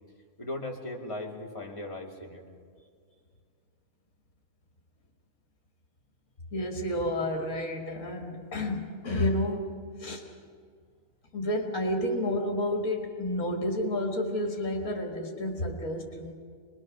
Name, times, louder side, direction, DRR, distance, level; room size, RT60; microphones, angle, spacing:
voice 1, 0.4-2.4, left 2 dB, 20° left, -1 dB, 2.5 m, -38 dB
voice 2, 6.5-9.7 10.0-10.2 11.3-16.3, left 1 dB, 70° left, 1 dB, 2.5 m, -30 dB
27.5 x 21.0 x 6.3 m, 2.1 s
omnidirectional pair, 1.5 m